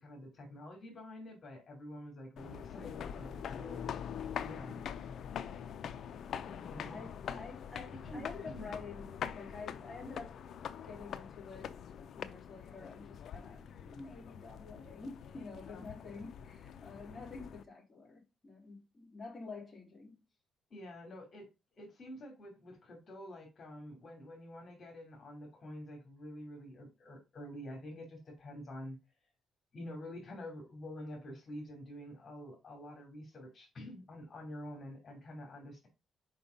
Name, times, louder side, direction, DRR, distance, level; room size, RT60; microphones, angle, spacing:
voice 1, 0.0-3.8 4.4-4.8 6.6-7.0 8.0-8.7 15.7-15.9 20.7-21.5 21.8-29.0 29.7-35.9, left 1 dB, 45° left, 2.9 m, -48 dB
sound 1, 2.4-17.6, left 8 dB, 65° left, 0.6 m, -44 dB
voice 2, 6.4-20.2, left 4 dB, 20° left, 3.5 m, -49 dB
5.6 x 5.2 x 5.2 m
cardioid pair, 90°, 0 cm